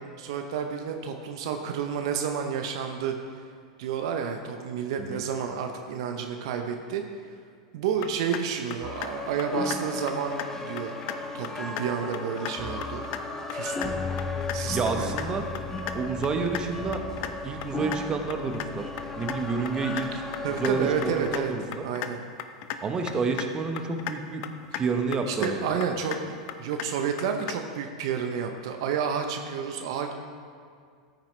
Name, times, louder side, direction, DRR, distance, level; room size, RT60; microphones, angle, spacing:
voice 1, 0.1-3.1 3.8-7.0 7.7-10.3 10.6-11.0 11.3-13.0 13.5-13.9 14.5-15.1 20.4-21.5 21.8-22.2 25.3-30.1, right 7 dB, 65° right, 4 dB, 0.8 m, -30 dB
sound 1, 8.0-8.4 8.7-9.1 9.4-9.8 10.1-10.5 10.8-11.2 11.4-11.9 12.1-12.5 12.8-13.2 13.5-13.9 14.2-14.6 14.9-15.2 15.5-15.9 16.2-16.6 16.9-17.3 17.6-18.0 18.3-18.7 19.0-19.4 19.7-20.0 20.3-20.7 21.0-21.4 21.7-22.1 22.4-22.8 23.1-23.5 23.8-24.2 24.4-24.8 25.1-25.5 25.8-26.2 26.5-26.9 27.2-27.6, left 13 dB, 55° left, 0.7 m, -35 dB
sound 2, 8.8-21.4, left 3 dB, 15° left, 0.9 m, -35 dB
voice 2, 14.7-15.4 15.9-17.0 17.4-20.1 20.6-21.8 22.8-24.4 24.7-25.6, right 4 dB, 25° right, 5 dB, 1.1 m, -29 dB
14.5 x 9.0 x 3.3 m, 2.1 s
hypercardioid pair, 95°, 3 cm